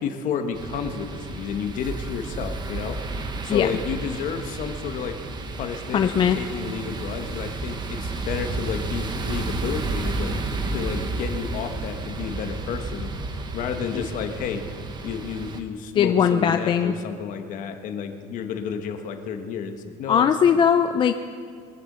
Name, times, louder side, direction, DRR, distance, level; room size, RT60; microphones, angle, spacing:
voice 1, 0.0-3.0 3.4-5.2 5.5-10.4 10.7-13.1 13.5-14.6 15.0-20.3, left 6 dB, 50° left, 6 dB, 1.3 m, -31 dB
sound 1, 0.5-15.6, right 3 dB, 25° right, 1.0 m, -31 dB
voice 2, 5.9-6.4 16.0-16.9 20.1-21.1, left 8 dB, 30° left, 8 dB, 0.4 m, -19 dB
22.5 x 7.8 x 6.8 m, 2.2 s
cardioid pair, 155°, 17 cm